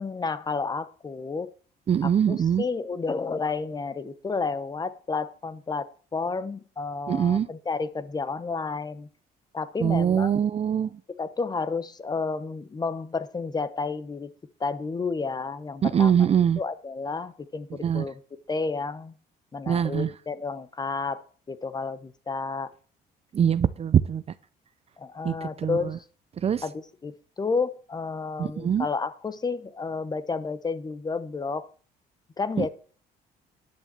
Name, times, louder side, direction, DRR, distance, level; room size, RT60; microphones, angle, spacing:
voice 1, 0.0-1.5 2.0-9.1 9.5-10.4 11.2-14.3 14.6-16.3 16.6-18.2 18.5-19.1 19.5-22.7 25.0-26.0 26.6-31.7 32.4-32.7, left 4 dB, 25° left, 15 dB, 0.9 m, -31 dB
voice 2, 1.9-2.6 7.1-7.5 9.8-11.0 15.8-16.6 17.8-18.0 19.7-20.1 23.3-24.2 25.2-26.0 26.4-26.6 28.4-28.9 32.6-32.7, right 8 dB, 35° right, 16 dB, 0.6 m, -23 dB
10.5 x 7.1 x 7.5 m, 0.42 s
cardioid pair, 110°, 17 cm